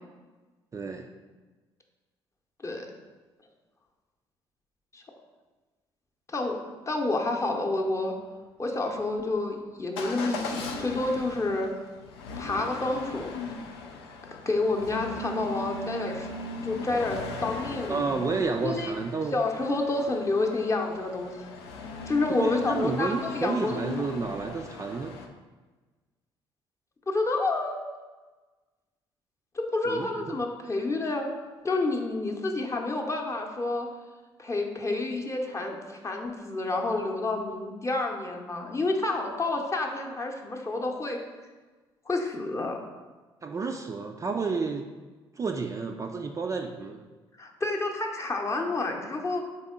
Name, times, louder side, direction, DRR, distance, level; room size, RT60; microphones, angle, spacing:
voice 1, 0.7-1.1 17.9-19.4 22.3-25.2 29.9-30.4 43.4-44.9 45.4-47.1, right 4 dB, 25° right, 3 dB, 0.3 m, -31 dB
voice 2, 6.3-6.6 6.9-8.1 8.6-11.7 12.4-13.3 14.5-16.3 16.6-18.1 18.6-18.9 19.3-21.4 22.1-24.1 27.1-27.8 29.5-31.3 31.6-33.9 34.4-41.2 42.1-42.8 47.4-49.4, left 2 dB, 25° left, 1 dB, 0.7 m, -29 dB
Motor vehicle (road) / Engine starting / Accelerating revving vroom, 10.0-25.3, left 4 dB, 75° left, 0.4 m, -38 dB
4.2 x 3.5 x 3.7 m, 1.3 s
figure-of-eight pair, 45°, 13 cm